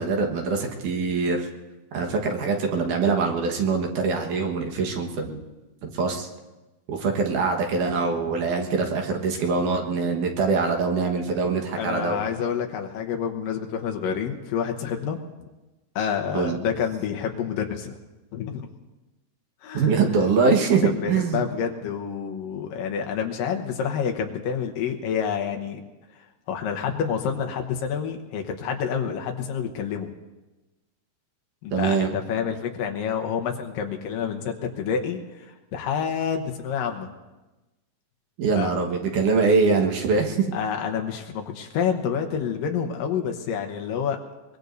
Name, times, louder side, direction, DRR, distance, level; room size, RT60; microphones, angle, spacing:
voice 1, 0.0-1.5 1.9-5.4 5.8-6.3 6.9-12.2 16.3-16.6 19.7-21.5 31.7-32.1 38.4-40.5, right 4 dB, 70° right, 2 dB, 2.9 m, -23 dB
voice 2, 11.8-15.2 16.0-17.9 18.3-18.7 19.6-20.2 20.8-25.8 26.5-30.1 31.6-37.1 38.6-38.7 40.5-44.2, left 7 dB, 90° left, 3 dB, 2.8 m, -28 dB
23.5 x 21.5 x 2.7 m, 1.1 s
omnidirectional pair, 3.8 m